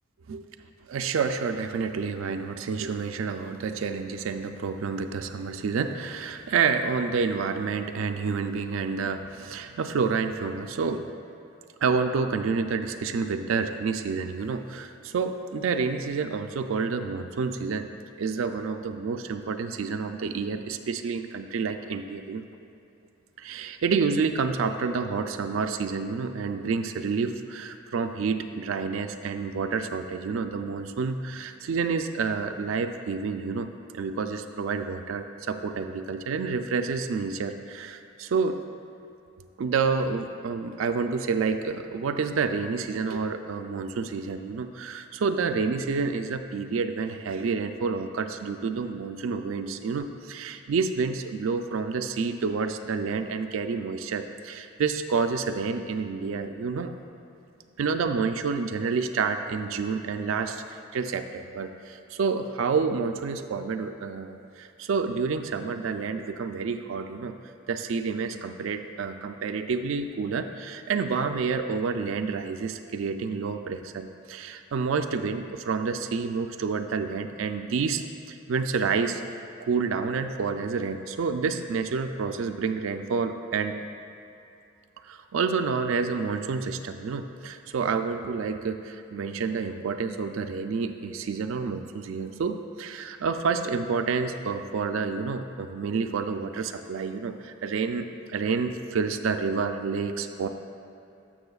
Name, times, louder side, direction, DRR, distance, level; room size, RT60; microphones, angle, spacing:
voice 1, 0.9-11.1 11.8-17.9 18.2-22.4 23.4-38.6 39.6-56.9 57.8-67.4 67.7-79.2 79.6-83.8 85.0-100.5, right 5 dB, 70° right, 7 dB, 0.4 m, -29 dB
12.0 x 6.3 x 2.4 m, 2.7 s
head